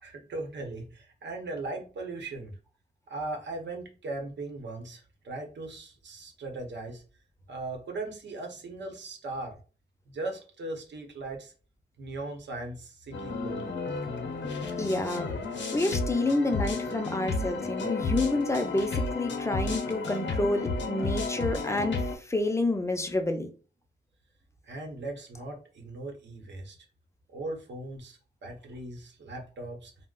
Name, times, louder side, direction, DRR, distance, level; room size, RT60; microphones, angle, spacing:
voice 1, 0.0-2.6 3.1-7.0 7.5-9.6 10.1-11.5 12.0-13.7 24.6-26.8 27.3-29.9, right 2 dB, 70° right, 0.8 m, -38 dB
sound 1, 13.1-22.2, left 3 dB, 75° left, 0.6 m, -32 dB
voice 2, 14.8-15.3 15.7-23.5, left 2 dB, 15° left, 0.4 m, -29 dB
2.3 x 2.1 x 3.6 m
wide cardioid pair, 130°, 19 cm